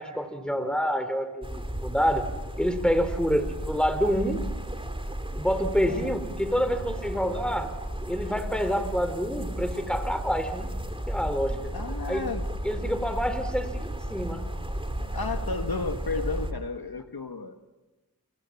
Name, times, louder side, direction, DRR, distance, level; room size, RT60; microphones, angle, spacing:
voice 1, 0.0-2.3 2.6-4.4 5.4-7.7 8.1-10.8 11.1-11.7 12.1-12.3 12.6-14.4, equal, ahead, 10 dB, 3.3 m, -27 dB
sound 1, 1.4-16.5, right 1 dB, 15° right, 3.3 m, -34 dB
voice 2, 11.7-12.5 12.8-13.0 15.0-17.7, left 4 dB, 70° left, 7 dB, 1.8 m, -33 dB
29.5 x 27.5 x 7.3 m, 1.1 s
wide cardioid pair, 55°, 39 cm